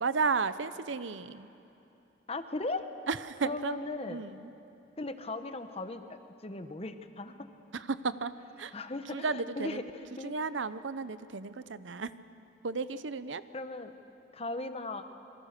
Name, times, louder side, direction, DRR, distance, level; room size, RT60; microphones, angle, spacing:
voice 1, 0.0-1.5 3.1-3.8 4.1-4.5 7.7-8.3 8.6-8.7 9.1-9.8 10.2-12.1 12.6-13.4, right 4 dB, 75° right, 14 dB, 0.7 m, -33 dB
voice 2, 2.3-2.8 3.4-4.3 5.0-7.5 8.7-10.4 13.5-14.0 14.3-15.2, left 2 dB, 30° left, 8 dB, 1.1 m, -38 dB
27.0 x 23.5 x 6.7 m, 2.9 s
head